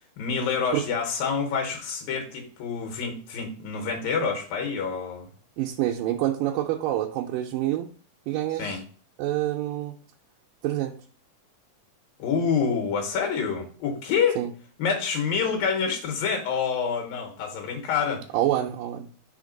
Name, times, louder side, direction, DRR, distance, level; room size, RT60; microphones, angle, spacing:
voice 1, 0.2-5.3 8.6-8.8 12.2-14.4 14.8-18.2, left 6 dB, 75° left, 2.8 m, -27 dB
voice 2, 5.6-7.9 8.3-8.8 9.2-9.9 10.6-11.0 14.4-14.5 18.3-19.1, right 13 dB, 80° right, 2.1 m, -27 dB
5.8 x 3.4 x 5.1 m
omnidirectional pair, 4.1 m